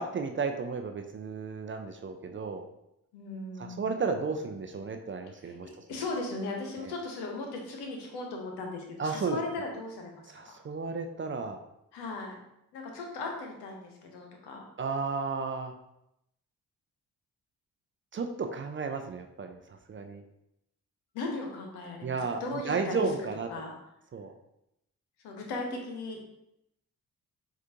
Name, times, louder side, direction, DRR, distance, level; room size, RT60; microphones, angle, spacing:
voice 1, 0.0-2.7 3.6-6.0 6.8-6.9 9.0-9.4 10.3-11.6 14.8-15.7 18.1-20.2 22.0-23.5 24.1-24.3, right 4 dB, 30° right, 5 dB, 0.4 m, -33 dB
voice 2, 3.1-3.9 5.6-10.6 11.9-12.3 12.7-14.6 21.1-23.1 23.5-23.7 25.2-26.3, left 2 dB, 80° left, 1 dB, 0.8 m, -37 dB
4.5 x 2.4 x 2.8 m, 0.83 s
hypercardioid pair, 40°, 40 cm